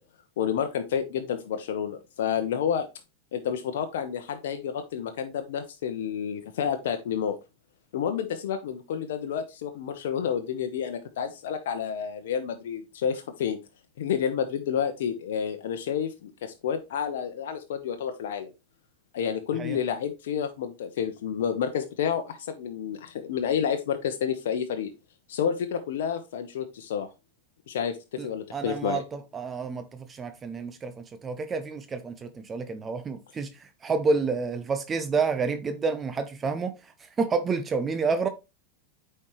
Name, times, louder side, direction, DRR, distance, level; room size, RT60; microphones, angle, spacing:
voice 1, 0.4-2.9 3.3-7.4 7.9-13.6 14.0-18.5 19.1-24.9 25.3-27.1 27.7-29.0, left 8 dB, 75° left, 0.8 m, -30 dB
voice 2, 28.2-36.9 37.2-38.3, right 4 dB, 25° right, 0.7 m, -29 dB
8.5 x 4.5 x 3.1 m
hypercardioid pair, 110°, 0 cm